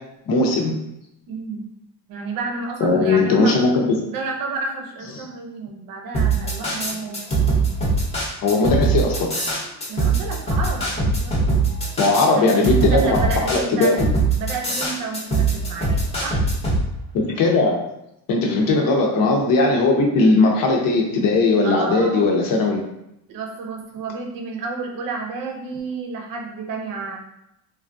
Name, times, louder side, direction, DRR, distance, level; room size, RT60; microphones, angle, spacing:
voice 1, 0.3-0.8 2.8-3.7 5.2-5.3 8.4-9.3 12.0-13.2 13.5-14.1 17.1-17.8 18.3-22.8, left 3 dB, 60° left, 0 dB, 0.8 m, -18 dB
voice 2, 1.3-1.7 2.1-3.6 4.1-7.2 9.9-11.5 12.3-14.0 14.3-16.5 18.6-18.9 21.6-22.5 23.3-27.2, right 4 dB, 60° right, 1 dB, 0.7 m, -31 dB
sound 1, 6.1-16.8, right 3 dB, 15° left, 0.7 m, -21 dB
3.3 x 2.3 x 2.6 m, 0.82 s
cardioid pair, 155°, 38 cm